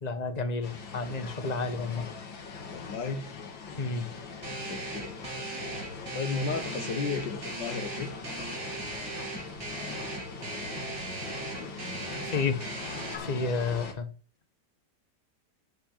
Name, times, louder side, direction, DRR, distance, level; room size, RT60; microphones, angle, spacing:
voice 1, 0.0-2.1 3.8-4.1 12.2-12.6 13.2-14.1, left 4 dB, 25° left, 1.2 m, -31 dB
sound 1, 0.6-13.9, left 5 dB, 90° left, 2.6 m, -42 dB
voice 2, 2.7-3.3 4.6-5.7 6.1-8.1, left 5 dB, 70° left, 2.2 m, -34 dB
sound 2, 4.4-13.1, right 2 dB, 65° right, 3.9 m, -38 dB
10.0 x 8.0 x 7.6 m
omnidirectional pair, 2.0 m